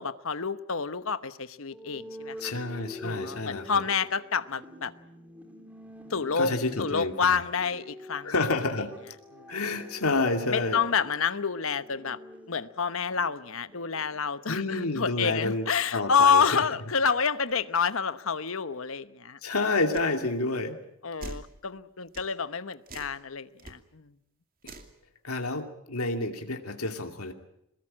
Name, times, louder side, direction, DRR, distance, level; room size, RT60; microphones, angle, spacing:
voice 1, 0.0-2.4 3.0-4.9 6.1-6.5 6.8-8.3 9.3-9.5 10.5-12.2 12.5-19.4 21.0-24.1, left 6 dB, 70° left, 13 dB, 1.0 m, -28 dB
sound 1, 1.7-15.4, left 1 dB, 5° right, 3.6 m, -47 dB
voice 2, 2.4-3.8 6.4-7.4 8.2-8.9 9.5-10.8 14.5-16.6 19.4-20.8 24.6-24.7 25.2-27.3, left 2 dB, 90° left, 5 dB, 2.6 m, -29 dB
sound 2, 19.9-20.1 21.2-21.5 22.1-22.3 22.9-23.2 23.6-23.7 24.6-24.9, right 2 dB, 40° right, 2.5 m, -42 dB
23.0 x 20.5 x 8.8 m, 0.81 s
head